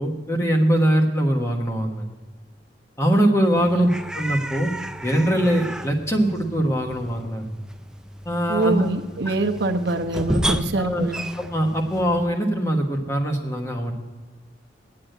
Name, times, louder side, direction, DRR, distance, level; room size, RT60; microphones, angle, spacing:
voice 1, 0.0-2.1 3.0-4.7 5.0-7.5 8.2-8.9 9.3-9.4 10.8-11.1 11.4-13.9, equal, 15° left, 1 dB, 1.3 m, -22 dB
sound 1, 3.5-12.3, right 1 dB, 5° right, 0.4 m, -33 dB
voice 2, 8.5-11.2, right 2 dB, 60° right, 4 dB, 1.0 m, -24 dB
9.7 x 8.6 x 7.8 m, 1.3 s
head